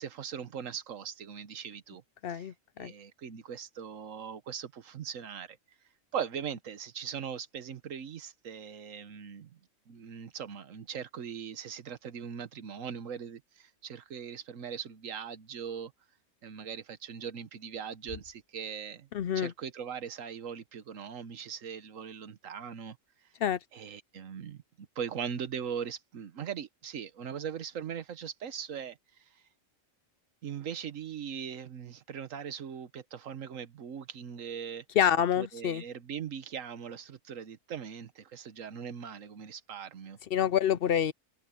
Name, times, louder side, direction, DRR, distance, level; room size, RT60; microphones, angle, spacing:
voice 1, 0.0-2.0 2.3-2.5 2.8-5.6 6.1-9.5 9.9-15.9 16.4-19.1 19.3-23.0 23.7-24.6 25.0-29.0 30.4-34.8 35.4-40.2, right 7 dB, 75° right, 1.5 m, -40 dB
voice 2, 2.2-2.9 19.1-19.5 23.4-23.6 35.0-35.8 40.3-41.1, left 9 dB, 60° left, 0.6 m, -27 dB
omnidirectional pair, 1.4 m